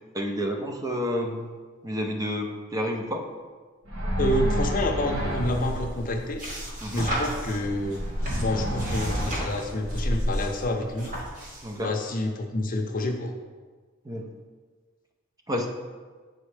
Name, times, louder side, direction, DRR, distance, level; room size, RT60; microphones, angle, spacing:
voice 1, 0.1-1.5 1.8-3.3 6.8-7.1 11.6-11.9 14.1-14.3 15.5-15.7, equal, 15° right, 2 dB, 0.4 m, -30 dB
sound 1, 3.9-5.9 7.5-9.3, equal, 80° right, 1.5 m, -29 dB
voice 2, 4.2-6.4 6.9-8.0 8.4-11.2 11.8-13.3, left 1 dB, 40° left, 3 dB, 0.6 m, -28 dB
sound 2, 5.0-11.8, equal, 40° right, 1.2 m, -33 dB
7.1 x 4.2 x 3.3 m, 1.4 s
head